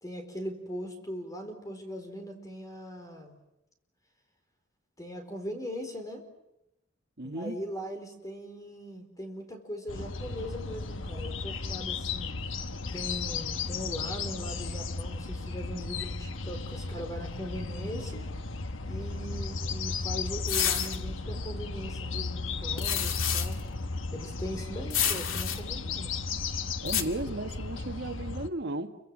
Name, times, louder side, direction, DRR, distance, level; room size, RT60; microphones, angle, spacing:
voice 1, 0.0-3.4 5.0-6.3 7.2-12.3 12.9-18.2 18.9-23.6 24.1-26.2, equal, 20° left, 4.3 m, -40 dB
voice 2, 7.2-7.6 26.8-29.0, right 2 dB, 55° right, 1.7 m, -35 dB
sound 1, 9.9-28.5, left 4 dB, 70° left, 1.2 m, -35 dB
sound 2, 20.5-21.0 22.8-23.5 24.9-25.6 26.9-27.0, left 8 dB, 90° left, 2.3 m, -29 dB
29.0 x 24.5 x 7.6 m
head